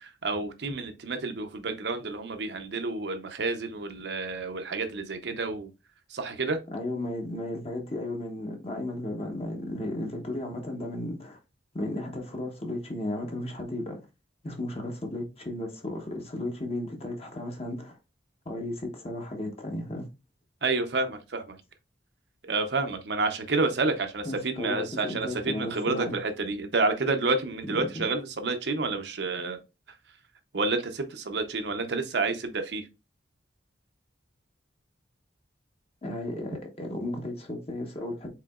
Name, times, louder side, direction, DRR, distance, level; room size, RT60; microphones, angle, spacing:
voice 1, 0.0-5.7 6.1-6.6 20.6-21.6 22.4-29.6 30.5-32.9, right 3 dB, 65° right, 0.7 m, -29 dB
voice 2, 6.7-11.4 11.7-14.0 14.4-18.0 18.4-20.1 24.2-26.1 27.7-28.1 36.0-38.3, left 1 dB, 35° left, 1.0 m, -34 dB
4.9 x 3.8 x 2.4 m
head